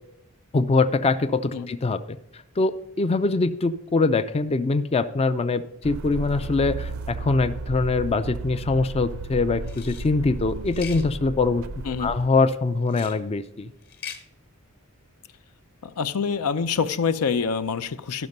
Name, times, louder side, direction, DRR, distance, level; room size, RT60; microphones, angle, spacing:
voice 1, 0.5-2.0 2.6-11.6 12.0-13.7, left 3 dB, 25° left, 11 dB, 0.4 m, -23 dB
sound 1, 5.8-12.3, right 3 dB, 65° right, 0.5 m, -34 dB
sound 2, 9.6-10.1 10.7-11.1 12.9-13.2 13.8-14.2, left 8 dB, 45° left, 1.2 m, -39 dB
voice 2, 15.8-18.3, left 5 dB, 80° left, 13 dB, 0.6 m, -26 dB
13.0 x 5.9 x 5.3 m, 0.82 s
head